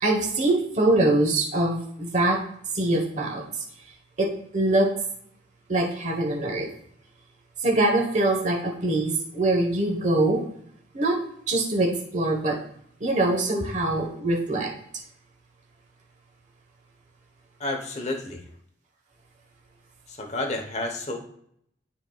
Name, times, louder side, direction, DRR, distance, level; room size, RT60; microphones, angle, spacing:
voice 1, 0.0-2.4 2.7-3.4 4.2-4.9 5.7-6.7 7.6-10.4 10.9-11.2 11.5-12.6 13.0-14.7, right 2 dB, 40° right, 0 dB, 1.2 m, -23 dB
voice 2, 17.6-18.4 20.1-21.2, left 2 dB, 35° left, 3 dB, 0.9 m, -30 dB
12.0 x 4.0 x 2.3 m, 0.69 s
head